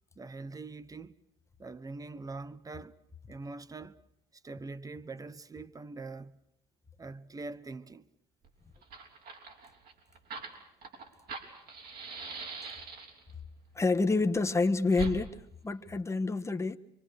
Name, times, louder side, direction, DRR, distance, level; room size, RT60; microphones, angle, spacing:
voice 1, 0.2-1.2 1.6-3.0 3.3-4.0 4.4-6.4 7.0-8.1, right 3 dB, 20° right, 1.1 m, -43 dB
Fire, 8.4-8.5 8.8-13.3 14.9-15.2, right 5 dB, 65° right, 5.9 m, -42 dB
voice 2, 13.7-16.8, left 3 dB, 15° left, 1.4 m, -28 dB
27.0 x 25.0 x 6.6 m
cardioid pair, 110°, 17 cm